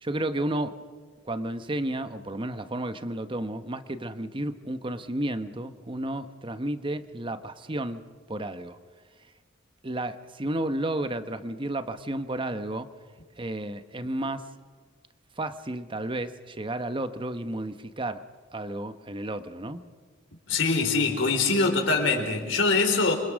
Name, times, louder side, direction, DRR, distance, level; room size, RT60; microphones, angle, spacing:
voice 1, 0.0-0.8 1.2-8.0 8.3-8.8 9.8-12.9 13.4-14.4 15.4-18.2 18.5-19.8, right 1 dB, 25° right, 10 dB, 1.0 m, -32 dB
voice 2, 20.5-23.1, left 3 dB, 70° left, 3 dB, 4.1 m, -23 dB
27.0 x 24.5 x 6.3 m, 1.5 s
head